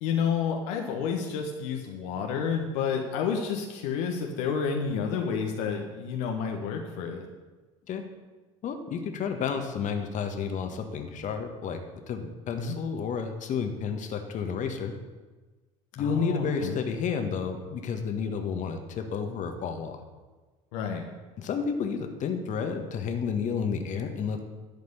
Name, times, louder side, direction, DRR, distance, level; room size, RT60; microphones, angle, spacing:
voice 1, 0.0-7.3 12.6-12.8 16.0-16.8 20.7-21.1, left 6 dB, 70° left, 2 dB, 1.4 m, -30 dB
voice 2, 8.6-11.8 12.1-14.9 16.0-20.0 21.4-24.4, left 6 dB, 50° left, 5 dB, 1.6 m, -31 dB
12.0 x 5.3 x 8.2 m, 1.3 s
hypercardioid pair, 65°, 17 cm